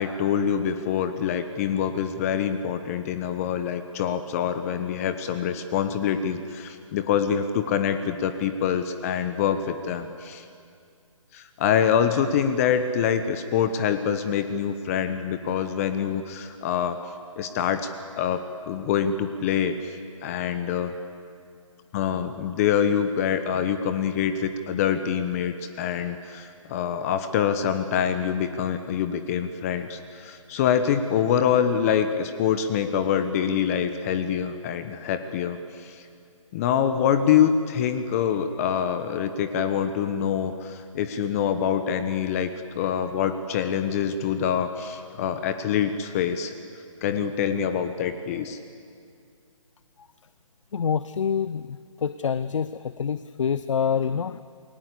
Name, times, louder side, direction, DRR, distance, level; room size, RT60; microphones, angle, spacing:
voice 1, 0.0-10.4 11.3-17.0 17.4-17.9 18.2-20.0 20.2-20.9 21.9-36.0 36.5-42.5 42.7-46.5 47.0-48.6, left 8 dB, 25° left, 10 dB, 1.1 m, -25 dB
voice 2, 50.7-54.4, left 7 dB, 65° left, 14 dB, 0.8 m, -26 dB
29.0 x 22.0 x 8.5 m, 2.3 s
hypercardioid pair, 150°, 17 cm